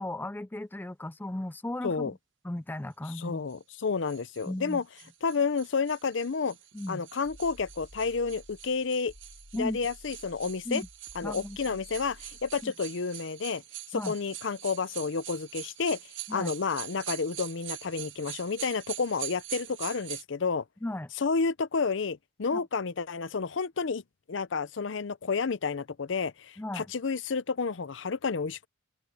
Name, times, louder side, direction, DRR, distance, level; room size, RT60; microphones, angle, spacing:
voice 1, 0.0-2.1 2.4-3.4 4.5-4.8 6.7-7.0 9.5-9.8 10.7-10.9 11.2-11.8 12.6-12.7 13.9-14.1 16.3-16.5 20.8-21.1 22.5-22.6 26.6-26.9, left 1 dB, 10° left, 0.4 m, -36 dB
voice 2, 3.2-4.8 5.2-6.6 6.9-9.1 9.6-10.8 11.1-13.6 13.9-16.0 16.3-20.6 21.2-24.0 24.3-28.7, left 5 dB, 70° left, 0.6 m, -30 dB
sound 1, 3.5-20.2, right 14 dB, 75° right, 1.1 m, -44 dB
sound 2, 7.2-12.7, left 1 dB, 55° left, 2.7 m, -53 dB
open air
head